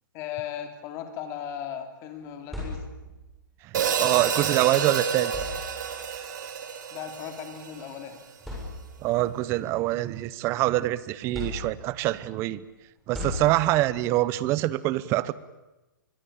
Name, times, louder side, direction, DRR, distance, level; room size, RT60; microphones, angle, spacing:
voice 1, 0.1-2.9 6.9-8.2, left 9 dB, 25° left, 7 dB, 3.0 m, -37 dB
sound 1, 2.2-3.3 4.6-4.7 5.2-6.1 7.2-7.4 7.9-8.0 8.4-9.2 9.7-10.8 11.3-12.1 13.1-14.0, left 2 dB, ahead, 7.3 m, -37 dB
voice 2, 3.6-5.3 9.0-12.6 13.1-15.3, right 16 dB, 25° right, 18 dB, 0.9 m, -25 dB
Hi-hat, 3.7-8.0, right 7 dB, 60° right, 3.7 m, -29 dB
24.0 x 22.5 x 8.8 m, 1.0 s
hypercardioid pair, 160°, 11 cm